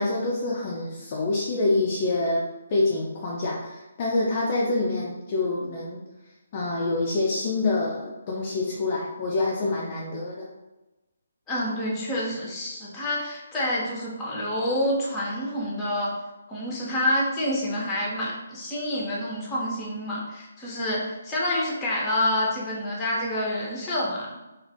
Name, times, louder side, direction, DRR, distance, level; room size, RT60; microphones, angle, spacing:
voice 1, 0.0-2.4 2.7-6.0 6.5-10.5, left 2 dB, 35° left, -4 dB, 0.4 m, -26 dB
voice 2, 11.5-16.2 16.5-24.3, left 1 dB, 15° left, -4 dB, 0.8 m, -28 dB
2.5 x 2.4 x 3.5 m, 1.1 s
figure-of-eight pair, 145°, 0 cm